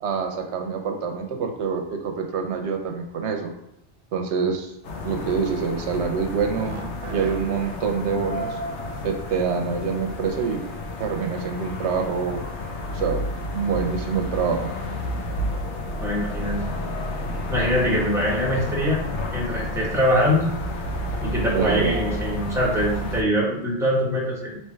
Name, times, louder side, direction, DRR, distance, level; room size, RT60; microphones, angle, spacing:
voice 1, 0.0-3.5 4.1-4.7 5.0-6.7 7.1-8.6 9.0-10.6 11.0-12.4 12.9-13.3 13.5-14.7 21.5-21.9, right 5 dB, 80° right, 4 dB, 0.9 m, -26 dB
sound 1, 4.8-23.2, left 1 dB, 85° left, 1.0 m, -31 dB
sound 2, 6.5-7.8 10.0-10.1 11.0-11.4 11.8-12.0 12.7-13.0 13.4-13.6 14.0-14.1, right 3 dB, 60° right, 0.3 m, -38 dB
voice 2, 16.0-16.6 17.5-19.0 19.3-20.5 21.2-24.6, equal, 5° right, -5 dB, 1.0 m, -23 dB
3.4 x 3.0 x 4.4 m, 0.82 s
omnidirectional pair, 1.1 m